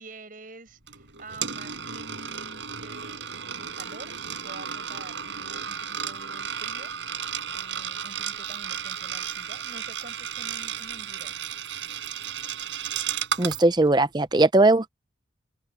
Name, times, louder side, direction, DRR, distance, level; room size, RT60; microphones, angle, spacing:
voice 1, 0.0-11.5, right 2 dB, 45° right, 7.2 m, -47 dB
Coin (dropping), 0.9-13.6, right 8 dB, 75° right, 5.0 m, -34 dB
voice 2, 13.4-14.9, right 2 dB, 20° right, 0.6 m, -19 dB
open air
head